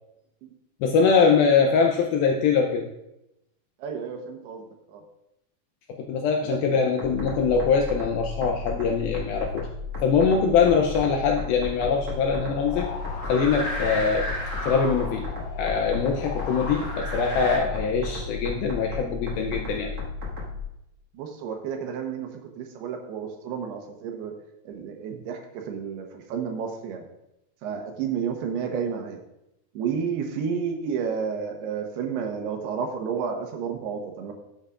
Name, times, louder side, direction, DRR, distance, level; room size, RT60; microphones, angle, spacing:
voice 1, 0.8-2.9 5.9-9.7 10.0-12.9 13.3-14.3 14.6-15.3 15.6-19.9, left 5 dB, 80° left, 2 dB, 2.2 m, -23 dB
voice 2, 3.8-5.0 6.5-6.6 21.1-22.3 22.6-24.3 24.7-27.0 27.6-29.2 29.7-34.3, right 6 dB, 75° right, 3 dB, 2.9 m, -31 dB
sound 1, 7.0-20.6, left 3 dB, 50° right, 2.0 m, -34 dB
sound 2, 12.6-17.6, left 1 dB, 60° left, 5.5 m, -34 dB
12.5 x 8.0 x 2.5 m, 0.86 s
omnidirectional pair, 4.9 m